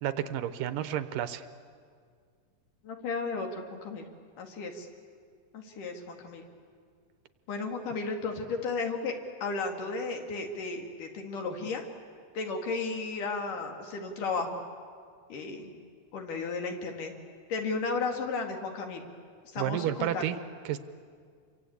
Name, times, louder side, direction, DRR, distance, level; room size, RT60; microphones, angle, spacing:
voice 1, 0.0-1.4 19.6-20.4 20.7-20.8, right 11 dB, 85° right, 11 dB, 2.6 m, -31 dB
voice 2, 2.8-4.1 4.4-4.9 5.5-6.4 7.5-11.8 12.4-14.6 15.3-15.8 16.1-17.1 17.5-19.1 19.5-20.2, left 4 dB, 70° left, 3 dB, 3.8 m, -34 dB
28.5 x 24.0 x 8.7 m, 2.1 s
omnidirectional pair, 3.9 m